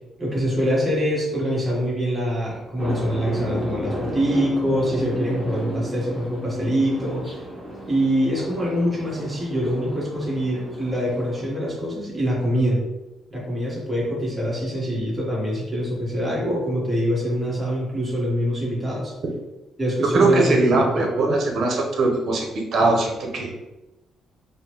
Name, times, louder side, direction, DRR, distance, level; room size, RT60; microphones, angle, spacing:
voice 1, 0.2-7.2 7.9-12.8 13.3-19.1 19.8-21.1, equal, 15° right, -5 dB, 1.4 m, -24 dB
sound 1, 2.8-11.5, equal, 5° left, 1.3 m, -33 dB
voice 2, 20.1-22.5 22.7-23.5, right 2 dB, 60° right, 1 dB, 0.9 m, -20 dB
4.9 x 2.1 x 3.1 m, 0.99 s
cardioid pair, 90°, 0 cm